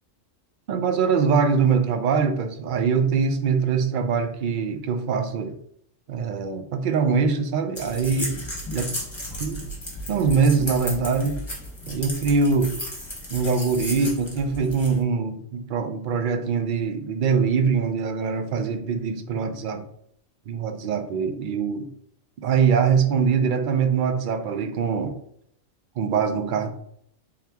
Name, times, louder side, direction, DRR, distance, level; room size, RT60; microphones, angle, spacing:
voice 1, 0.7-5.6 6.1-8.4 8.7-8.8 9.4-9.6 10.1-11.4 11.9-12.7 13.3-19.9 20.5-21.9 22.4-25.2 26.0-26.7, right 5 dB, 65° right, 7 dB, 0.5 m, -23 dB
sound 1, 7.7-15.0, left 1 dB, 20° left, 1.2 m, -34 dB
3.8 x 2.9 x 3.4 m, 0.68 s
omnidirectional pair, 1.4 m